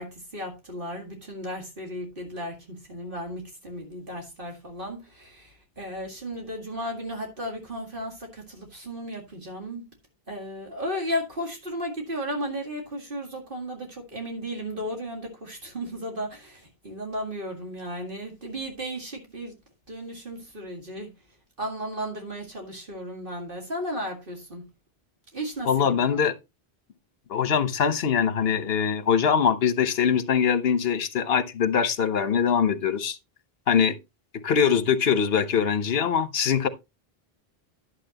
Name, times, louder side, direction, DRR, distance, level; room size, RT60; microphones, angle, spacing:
voice 1, 0.0-9.9 10.3-19.5 19.9-21.1 21.6-24.7 25.3-26.2, equal, 60° right, 2.2 m, -35 dB
voice 2, 25.7-26.3 27.3-33.2 33.7-33.9 34.3-36.7, left 7 dB, 75° left, 1.1 m, -23 dB
11.5 x 7.2 x 2.9 m
omnidirectional pair, 1.0 m